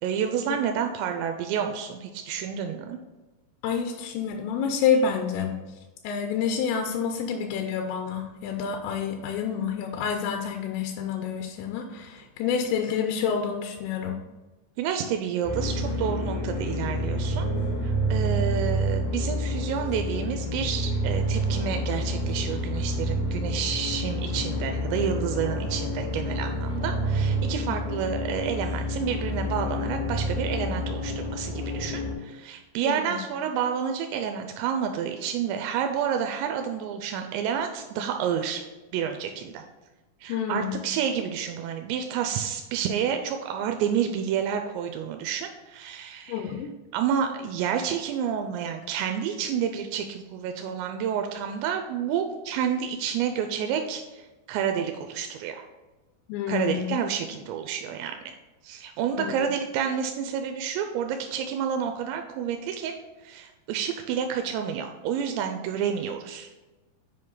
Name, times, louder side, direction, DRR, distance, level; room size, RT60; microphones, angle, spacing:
voice 1, 0.0-3.0 14.8-17.5 17.8-38.6 38.9-39.6 40.2-46.4 46.9-55.6 56.5-58.3 58.6-62.9 63.2-66.5, right 8 dB, 90° right, 5 dB, 2.8 m, -29 dB
voice 2, 3.6-5.8 6.0-14.2 27.7-27.8 32.8-33.2 40.3-40.8 46.3-46.7 56.3-57.0 59.2-59.5, left 7 dB, 90° left, 4 dB, 2.9 m, -28 dB
sound 1, 15.4-32.1, equal, 60° left, 4.5 m, -28 dB
7.7 x 5.5 x 3.9 m, 1.1 s
omnidirectional pair, 5.0 m